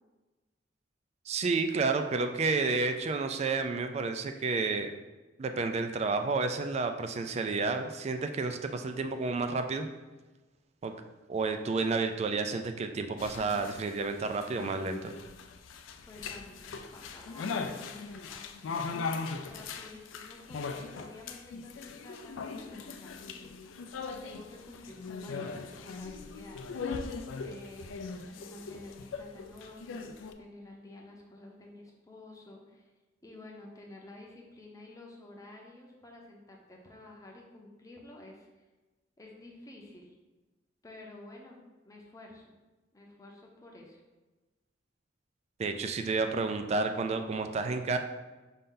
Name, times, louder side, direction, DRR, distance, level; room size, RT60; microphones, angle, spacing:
voice 1, 1.3-4.9 5.4-9.9 10.8-10.9 11.3-15.1 45.6-48.0, right 4 dB, 35° right, 7 dB, 0.3 m, -30 dB
sound 1, 13.2-30.3, left 4 dB, 80° left, 0.4 m, -40 dB
voice 2, 16.1-18.5 19.5-23.7 24.2-26.8 27.4-32.9 33.2-38.5 39.2-40.1 40.8-42.4 42.9-44.0, left 2 dB, 20° left, -1 dB, 0.6 m, -51 dB
5.4 x 2.6 x 3.7 m, 1.2 s
head